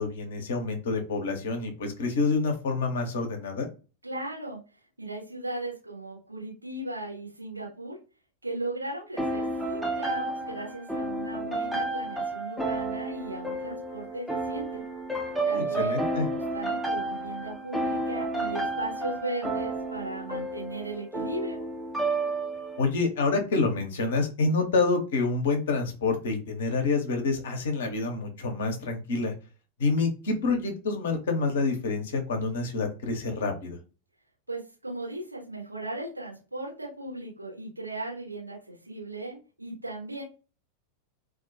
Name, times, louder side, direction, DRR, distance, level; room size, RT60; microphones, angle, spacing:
voice 1, 0.0-3.7 15.5-16.3 22.8-29.3 29.8-33.8, left 3 dB, 60° left, 4 dB, 0.6 m, -27 dB
voice 2, 4.0-4.6 5.0-8.0 8.4-14.8 15.4-21.6 34.5-40.2, right 2 dB, 85° right, -3 dB, 1.0 m, -37 dB
sound 1, 9.2-22.9, right 2 dB, ahead, 0.5 m, -31 dB
2.3 x 2.1 x 2.5 m, 0.33 s
figure-of-eight pair, 90°, 0 cm